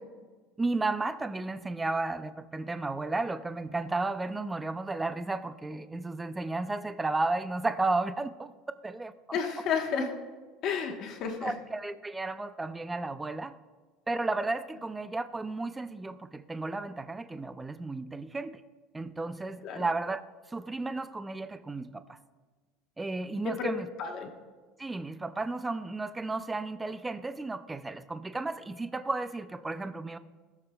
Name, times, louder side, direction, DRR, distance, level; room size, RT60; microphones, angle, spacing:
voice 1, 0.6-8.5 8.8-9.4 11.4-13.6 14.1-18.6 18.9-20.2 20.5-22.2 23.0-23.9 24.8-30.2, right 3 dB, 10° right, 12 dB, 0.3 m, -33 dB
voice 2, 9.3-10.1 10.6-11.5 19.6-19.9 23.4-23.7 24.0-24.3, left 6 dB, 40° left, 3 dB, 1.0 m, -31 dB
19.0 x 6.7 x 2.2 m, 1.4 s
cardioid pair, 170°, 0 cm